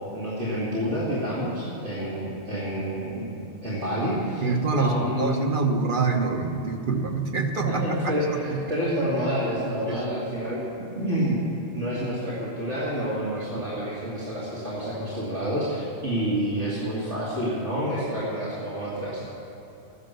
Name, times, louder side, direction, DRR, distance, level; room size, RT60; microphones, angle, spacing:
voice 1, 0.0-4.5 4.8-5.3 7.6-10.6 10.9-11.4 11.7-19.2, equal, 80° right, -9 dB, 3.0 m, -28 dB
voice 2, 4.4-8.6 9.9-10.0, right 4 dB, 50° right, 3 dB, 1.2 m, -26 dB
14.0 x 11.0 x 6.8 m, 3.0 s
omnidirectional pair, 1.2 m